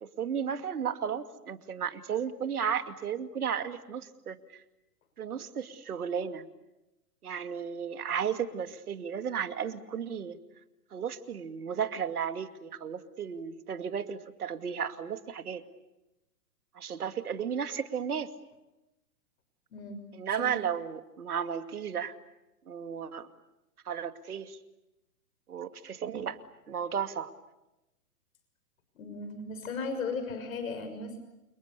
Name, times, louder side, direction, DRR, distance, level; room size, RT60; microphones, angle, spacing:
voice 1, 0.0-4.6 5.2-6.5 7.2-10.4 10.9-15.6 16.8-18.3 20.1-22.1 22.7-23.3 23.9-24.6 25.5-26.4 26.7-27.3, right 7 dB, 70° right, 9 dB, 2.5 m, -34 dB
voice 2, 28.9-31.2, left 4 dB, 60° left, 8 dB, 6.4 m, -36 dB
29.5 x 29.0 x 6.9 m, 0.95 s
figure-of-eight pair, 115°, 46 cm